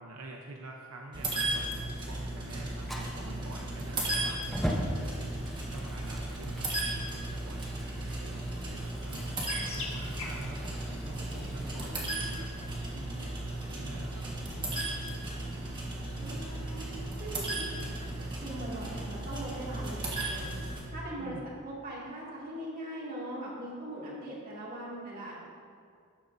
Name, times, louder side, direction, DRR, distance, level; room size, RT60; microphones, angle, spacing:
voice 1, 0.0-1.6 2.1-5.3 5.7-9.3 9.7-12.5 12.9-14.2 14.6-15.7 21.2-21.5, right 2 dB, 75° right, 0 dB, 0.8 m, -47 dB
sound 1, 1.1-20.8, right 2 dB, 20° right, 1.4 m, -36 dB
Fire, 2.8-11.8, equal, ahead, 0.8 m, -41 dB
sound 2, 3.8-16.6, left 3 dB, 30° left, 1.0 m, -51 dB
voice 2, 16.2-16.8 17.2-17.8 18.4-20.5 20.9-25.4, right 1 dB, 40° right, -5 dB, 2.2 m, -40 dB
12.5 x 10.5 x 2.6 m, 2.2 s
head